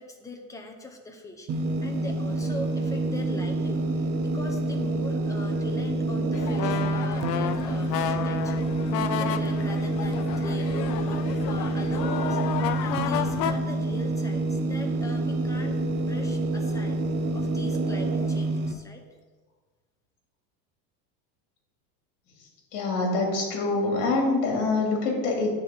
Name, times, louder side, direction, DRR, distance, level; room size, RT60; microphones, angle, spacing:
voice 1, 0.0-1.5 1.8-17.0 17.3-19.0, left 2 dB, 5° left, 3 dB, 0.8 m, -41 dB
sound 1, 1.5-18.7, right 2 dB, 25° right, 0.5 m, -27 dB
sound 2, 6.3-13.6, left 10 dB, 90° left, 0.7 m, -32 dB
voice 2, 22.7-25.5, left 3 dB, 45° left, 1 dB, 2.8 m, -25 dB
9.7 x 4.1 x 6.9 m, 1.4 s
supercardioid pair, 140°, 49 cm